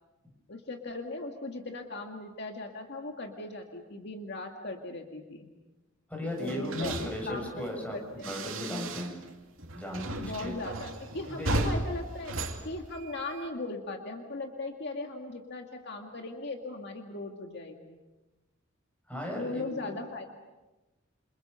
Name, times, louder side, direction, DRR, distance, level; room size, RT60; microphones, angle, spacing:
voice 1, 0.5-5.5 6.4-7.5 7.9-8.4 10.2-18.0 19.4-20.3, left 2 dB, 60° left, 3 dB, 2.1 m, -38 dB
voice 2, 6.1-9.1 9.7-10.5 11.3-11.7 19.1-19.9, left 1 dB, 5° left, 0 dB, 7.0 m, -36 dB
sound 1, 6.4-9.3 9.6-13.5, right 2 dB, 80° right, 2.7 m, -35 dB
28.5 x 27.5 x 5.6 m, 1.1 s
head